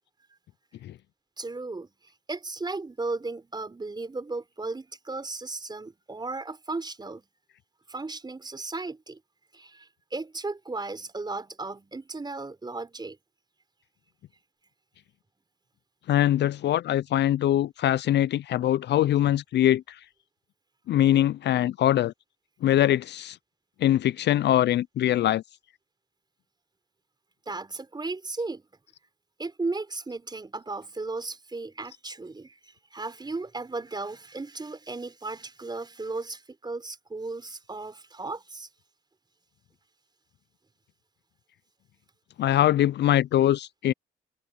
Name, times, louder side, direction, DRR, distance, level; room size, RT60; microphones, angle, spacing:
voice 1, 1.4-1.9 2.3-7.3 7.9-9.2 9.5-13.2 27.5-28.6 29.4-38.7, right 3 dB, 20° right, 4.5 m, -35 dB
voice 2, 16.1-20.0 20.9-22.1 22.6-23.4 23.8-25.4 42.4-43.9, left 12 dB, 60° left, 0.4 m, -22 dB
cardioid pair, 90°, 20 cm